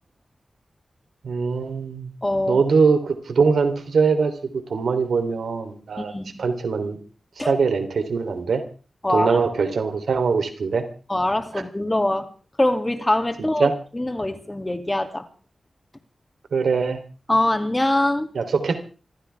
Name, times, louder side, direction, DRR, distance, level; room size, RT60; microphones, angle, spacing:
voice 1, 1.2-2.1 2.5-6.1 6.4-7.0 7.4-8.6 9.1-10.8 11.5-11.6 13.4-13.8 16.5-17.0 18.3-18.8, right 5 dB, 90° right, 7 dB, 3.2 m, -22 dB
voice 2, 2.2-2.6 6.0-6.4 7.4-7.6 9.0-9.4 11.1-12.3 12.6-15.3 17.3-18.3, left 1 dB, 20° left, 8 dB, 2.5 m, -23 dB
26.5 x 15.5 x 3.5 m, 0.37 s
wide cardioid pair, 75°, 0 cm